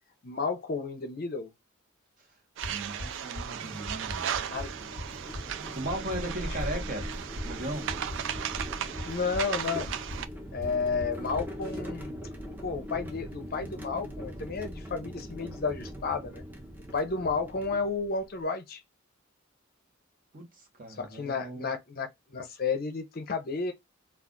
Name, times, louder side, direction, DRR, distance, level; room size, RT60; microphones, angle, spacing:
voice 1, 0.2-1.5 4.4-4.9 9.0-9.9 10.5-12.1 12.6-16.4 16.9-18.8 21.0-23.7, left 4 dB, 45° left, 0.5 m, -32 dB
sound 1, 2.6-10.3, right 9 dB, 60° right, 0.3 m, -36 dB
sound 2, 2.6-11.8, left 1 dB, 85° right, 1.3 m, -42 dB
voice 2, 2.7-4.3 5.7-7.1 7.4-7.9 20.3-21.7, right 1 dB, 40° right, 0.9 m, -37 dB
sound 3, 3.4-18.4, equal, 10° right, 0.5 m, -41 dB
2.3 x 2.3 x 3.6 m
head